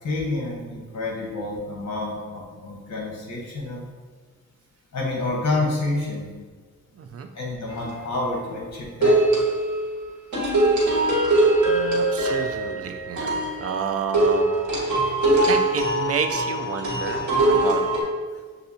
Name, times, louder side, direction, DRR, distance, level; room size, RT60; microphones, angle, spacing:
voice 1, 0.0-3.9 4.9-6.3 7.3-9.2, left 2 dB, 60° left, -2 dB, 1.0 m, -28 dB
voice 2, 7.0-7.3 11.7-14.5 15.4-17.8, right 6 dB, 50° right, 6 dB, 0.5 m, -30 dB
sound 1, 7.7-8.1 9.0-9.9 10.3-18.0, right 2 dB, 65° right, 1.2 m, -22 dB
6.7 x 2.6 x 2.7 m, 1.5 s
cardioid pair, 85°, 31 cm